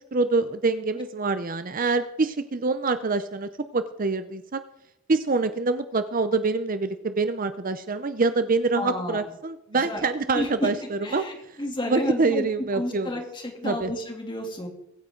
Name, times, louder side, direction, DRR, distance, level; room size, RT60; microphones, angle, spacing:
voice 1, 0.1-4.6 5.1-11.3 11.9-13.1 13.6-13.9, right 3 dB, 40° right, 11 dB, 0.7 m, -25 dB
voice 2, 8.7-9.3 9.7-10.0 10.3-10.7 11.0-12.5 12.7-14.7, left 1 dB, 20° left, 2 dB, 3.0 m, -31 dB
23.5 x 9.5 x 3.9 m, 0.85 s
head